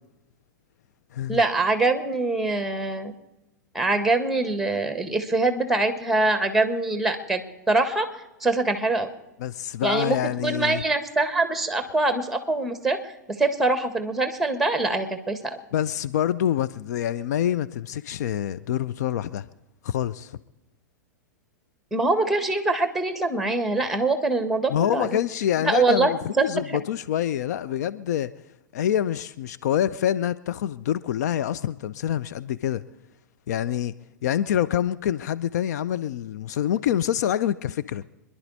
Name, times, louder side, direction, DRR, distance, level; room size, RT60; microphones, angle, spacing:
voice 1, 1.3-3.1 3.7-7.4 7.7-8.1 8.4-9.1 9.8-13.0 13.4-15.6 21.9-25.2 25.6-26.1 26.4-26.5, right 3 dB, ahead, 1.6 m, -23 dB
voice 2, 9.4-10.8 15.7-19.5 19.8-20.4 24.7-26.2 26.4-28.3 28.7-32.8 33.5-33.9 34.2-38.0, left 10 dB, 65° left, 0.5 m, -26 dB
26.5 x 11.0 x 4.1 m
figure-of-eight pair, 100°, 10 cm